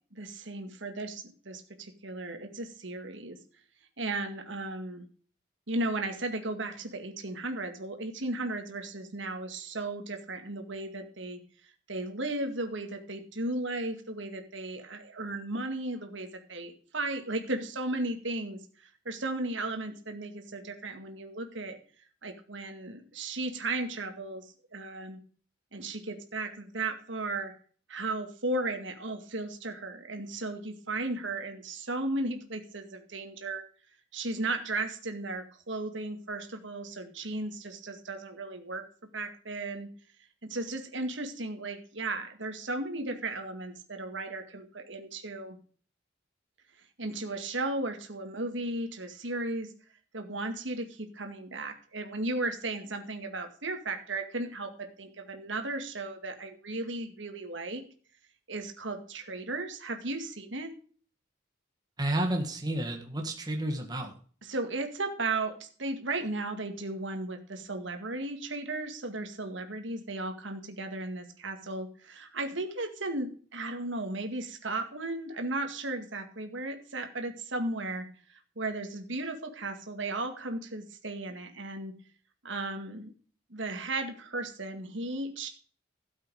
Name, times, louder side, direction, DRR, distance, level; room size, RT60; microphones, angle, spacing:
voice 1, 0.1-3.4 4.0-5.1 5.7-11.4 11.9-21.8 22.2-24.5 24.7-25.2 25.7-27.5 27.9-33.6 34.1-38.8 39.1-39.9 40.4-45.6 47.0-49.7 50.1-57.8 58.5-60.7 64.4-81.9 82.4-83.1 83.5-85.5, right 2 dB, 75° right, 6 dB, 2.1 m, -35 dB
voice 2, 62.0-64.1, right 1 dB, 20° right, 2 dB, 1.8 m, -31 dB
13.0 x 8.1 x 4.8 m, 0.43 s
head